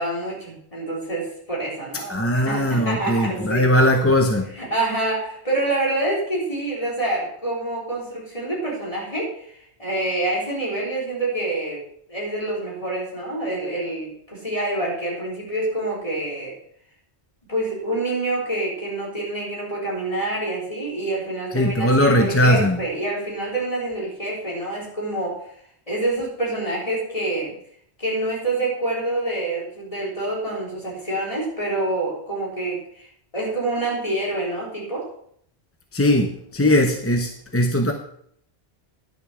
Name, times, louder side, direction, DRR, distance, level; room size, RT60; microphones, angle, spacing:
voice 1, 0.0-3.6 4.6-11.8 12.1-16.5 17.5-25.4 25.9-27.5 28.0-33.1 33.3-35.0, right 2 dB, 30° left, -4 dB, 3.9 m, -27 dB
voice 2, 2.1-4.5 21.5-22.8 35.9-37.9, left 1 dB, 15° left, 3 dB, 0.7 m, -19 dB
10.5 x 6.7 x 6.1 m, 0.67 s
omnidirectional pair, 1.1 m